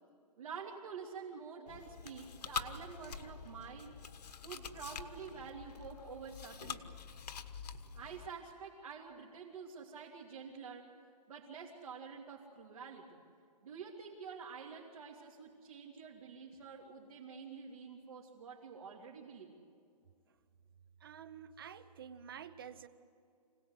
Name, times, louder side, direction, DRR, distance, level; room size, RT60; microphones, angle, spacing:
voice 1, 0.4-4.0 4.4-7.0 7.9-10.9 11.3-13.2 13.6-19.6, right 6 dB, 60° right, -3 dB, 2.9 m, -48 dB
Chewing mastication, 1.7-8.3, left 6 dB, 75° left, 1.4 m, -46 dB
voice 2, 21.0-22.9, right 8 dB, 35° right, 14 dB, 0.8 m, -50 dB
26.0 x 18.0 x 7.9 m, 2.4 s
hypercardioid pair, 180°, 21 cm